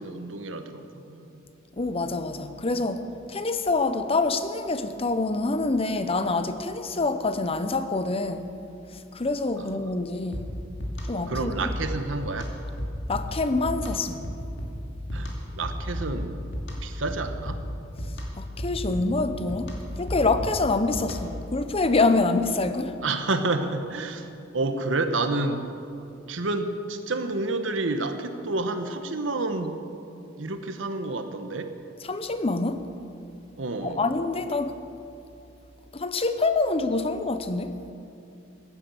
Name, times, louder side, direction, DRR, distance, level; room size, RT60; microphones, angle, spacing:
voice 1, 0.0-1.4 9.6-9.9 11.3-12.5 15.1-16.4 16.8-17.7 23.0-24.3 24.5-25.6 26.3-29.8 30.4-31.7 33.6-34.1, right 2 dB, 75° right, 8 dB, 1.1 m, -29 dB
voice 2, 1.8-8.5 8.9-10.5 11.1-11.7 13.1-14.2 18.4-19.7 20.0-22.9 32.1-32.8 33.8-34.8 35.9-37.8, left 3 dB, 30° left, 10 dB, 0.7 m, -26 dB
sound 1, 10.3-21.5, equal, 65° left, 2.7 m, -34 dB
16.0 x 11.0 x 7.0 m, 2.7 s
head